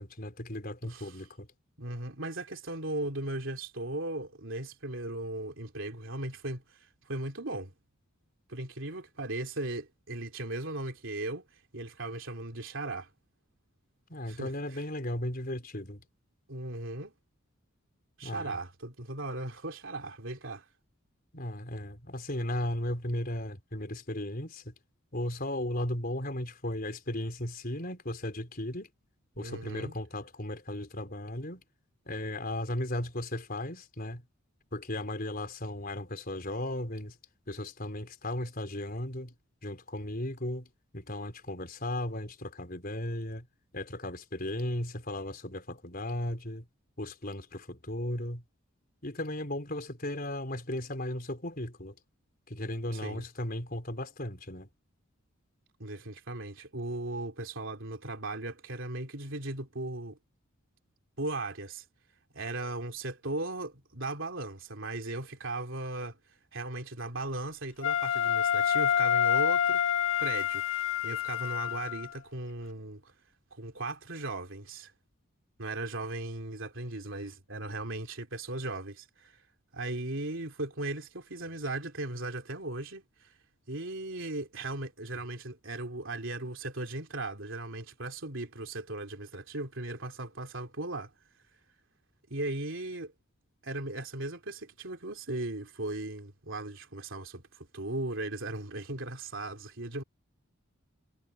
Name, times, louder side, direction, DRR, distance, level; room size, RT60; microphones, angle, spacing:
voice 1, 0.0-1.5 14.1-16.0 18.2-18.6 21.3-24.7 25.1-28.9 29.3-31.6 32.1-34.2 34.7-37.2 37.5-39.3 39.6-43.5 43.7-46.7 47.0-48.4 49.0-52.0 52.5-54.7, left 1 dB, 45° left, 4.4 m, -36 dB
voice 2, 0.8-1.2 1.8-7.7 8.5-13.1 14.3-14.8 16.5-17.1 18.2-20.7 29.4-29.9 52.9-53.3 55.8-60.2 61.2-61.8 62.3-66.2 66.5-69.8 70.2-73.1 73.5-74.9 75.6-79.4 79.7-83.4 83.7-91.1 92.3-93.1 93.6-100.0, right 2 dB, 65° right, 3.5 m, -37 dB
Wind instrument woodwind instrument, 67.8-72.1, left 9 dB, 65° left, 2.6 m, -27 dB
head